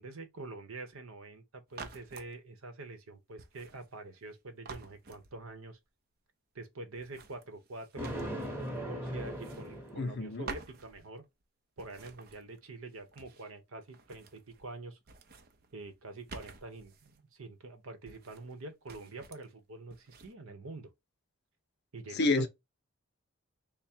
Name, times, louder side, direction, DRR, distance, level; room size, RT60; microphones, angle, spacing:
voice 1, 0.0-5.8 6.5-11.2 11.8-15.0 15.7-20.9 21.9-22.4, right 3 dB, 75° right, 0.9 m, -46 dB
sound 1, 1.7-2.3 3.4-4.3 4.7-5.7 6.9-8.8 9.2-10.2 10.5-11.4 11.8-13.6 13.9-14.8 15.0-17.2 18.1-18.6 18.9-19.5 19.9-20.3, right 4 dB, 45° right, 0.5 m, -50 dB
Thunder, 8.0-10.5, equal, 10° right, 0.9 m, -39 dB
voice 2, 9.9-10.5 22.1-22.5, left 3 dB, 50° left, 0.6 m, -29 dB
3.6 x 2.1 x 4.2 m
head